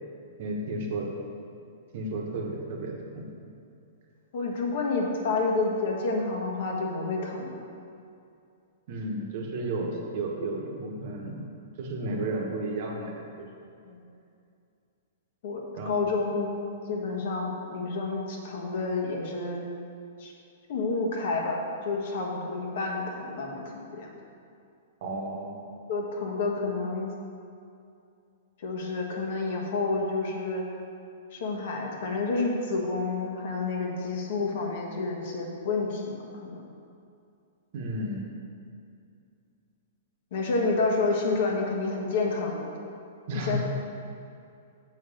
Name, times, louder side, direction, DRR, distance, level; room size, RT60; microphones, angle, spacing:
voice 1, 0.4-1.1 1.9-3.3 8.9-11.4 11.8-13.1 13.4-13.5 15.8-16.1 25.0-25.6 37.7-38.2 43.3-43.6, right 2 dB, 40° right, 0 dB, 1.2 m, -33 dB
voice 2, 4.3-7.6 12.2-12.3 13.8-14.0 15.4-16.5 16.9-19.6 20.2-20.3 20.7-21.6 21.8-23.5 23.9-24.1 25.9-27.1 28.6-30.6 31.3-36.6 40.3-42.7 43.3-43.6, left 3 dB, 45° left, 0 dB, 1.4 m, -29 dB
7.6 x 5.6 x 6.5 m, 2.5 s
hypercardioid pair, 175°, 0 cm